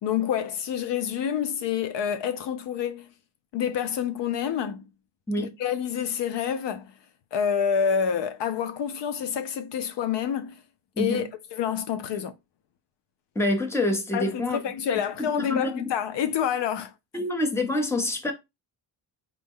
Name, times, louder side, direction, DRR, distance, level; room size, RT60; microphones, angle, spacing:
voice 1, 0.0-3.1 3.5-4.9 5.4-6.9 7.3-10.6 11.0-12.3 14.1-16.9, left 8 dB, 60° left, 0.5 m, -28 dB
voice 2, 11.0-11.3 13.3-14.6 15.2-15.9 17.1-18.3, left 2 dB, 5° left, 0.6 m, -26 dB
4.3 x 2.1 x 3.5 m
cardioid pair, 135°, 49 cm